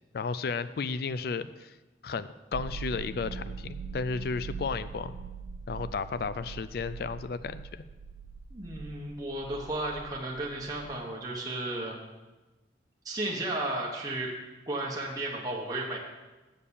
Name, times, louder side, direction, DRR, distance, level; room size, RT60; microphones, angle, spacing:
voice 1, 0.1-1.7 2.0-5.1 5.7-7.8, left 4 dB, 55° left, 14 dB, 0.4 m, -33 dB
sound 1, 2.5-10.9, right 5 dB, 60° right, 0.4 m, -42 dB
voice 2, 8.5-12.0 13.0-14.3 14.7-16.0, right 1 dB, 20° right, -3 dB, 1.0 m, -34 dB
7.3 x 6.6 x 6.9 m, 1.1 s
head